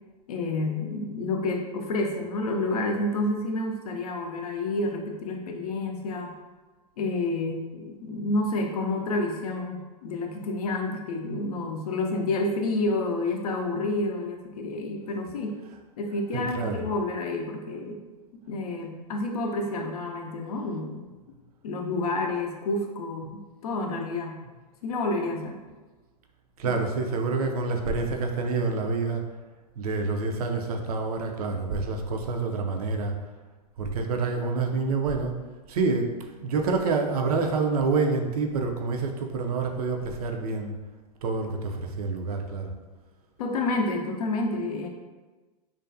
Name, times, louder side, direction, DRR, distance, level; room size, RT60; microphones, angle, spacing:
voice 1, 0.3-6.3 7.0-15.6 16.0-18.0 18.5-21.1 21.6-24.4 24.8-25.6 26.6-26.8 43.4-44.9, left 2 dB, 65° left, 2 dB, 0.4 m, -29 dB
voice 2, 16.3-16.8 26.6-29.3 29.8-33.2 33.8-35.4 35.7-40.8 41.2-42.7, right 4 dB, 65° right, 3 dB, 0.4 m, -27 dB
2.4 x 2.2 x 2.5 m, 1.2 s
figure-of-eight pair, 105°, 21 cm